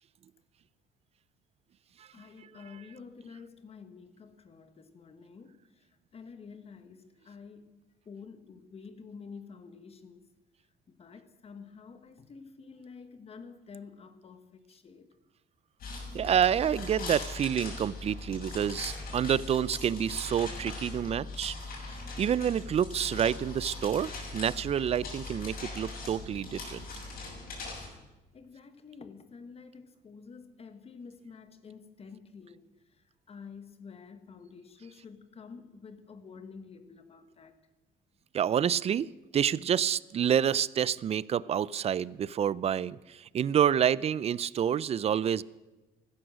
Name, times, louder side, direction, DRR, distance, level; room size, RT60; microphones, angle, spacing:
voice 1, 2.1-5.6 6.1-7.7 8.0-10.2 10.9-15.1 28.3-32.6 33.3-37.6, left 5 dB, 35° left, 1.5 m, -49 dB
sound 1, 15.8-27.9, left 3 dB, 60° left, 6.6 m, -40 dB
voice 2, 16.1-21.6 22.2-26.8 38.3-39.1 39.3-45.4, right 9 dB, 40° right, 0.4 m, -28 dB
15.0 x 14.0 x 6.3 m
cardioid pair, 110°, 17 cm